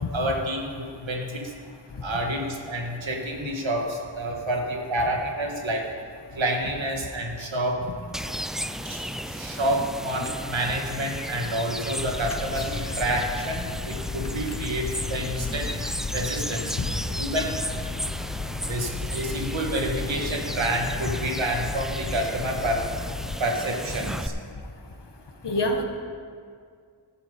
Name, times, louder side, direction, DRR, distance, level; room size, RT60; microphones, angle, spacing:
voice 1, 0.1-1.5 2.0-5.9 6.3-7.9 8.8-15.7 16.1-16.7 17.1-17.5 18.7-22.9 23.4-24.3, right 1 dB, 85° right, 2 dB, 1.5 m, -28 dB
sound 1, 8.1-24.3, equal, ahead, 0.3 m, -35 dB
sound 2, 12.0-23.4, left 4 dB, 35° left, 0.6 m, -35 dB
voice 2, 25.4-25.8, left 1 dB, 65° left, 4 dB, 1.3 m, -25 dB
14.0 x 7.4 x 5.2 m, 2.1 s
wide cardioid pair, 40°, 45 cm